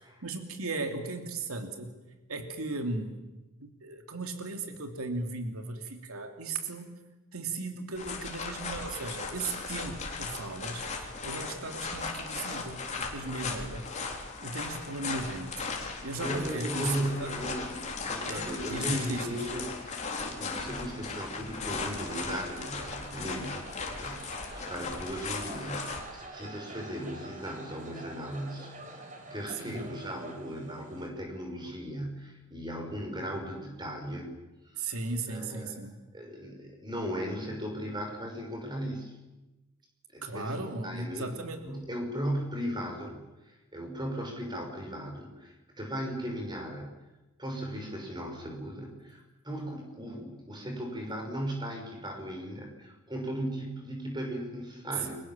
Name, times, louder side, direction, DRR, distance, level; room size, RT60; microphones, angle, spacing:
voice 1, 0.2-1.9 2.3-3.2 3.6-6.9 7.3-13.9 14.4-17.3 18.3-19.5 29.5-29.9 34.7-35.9 40.2-41.6 55.0-55.1, right 3 dB, 80° right, 5 dB, 2.8 m, -37 dB
sound 1, 8.0-26.0, left 4 dB, 35° left, 3.9 m, -37 dB
voice 2, 15.9-23.7 24.0-34.3 34.7-34.9 35.3-35.7 36.1-39.2 40.1-41.3 41.6-47.0 47.4-55.2, equal, 20° right, 3 dB, 5.8 m, -37 dB
sound 2, 22.0-31.1, right 2 dB, 35° right, 3.8 m, -46 dB
30.0 x 24.0 x 7.4 m, 1.1 s
head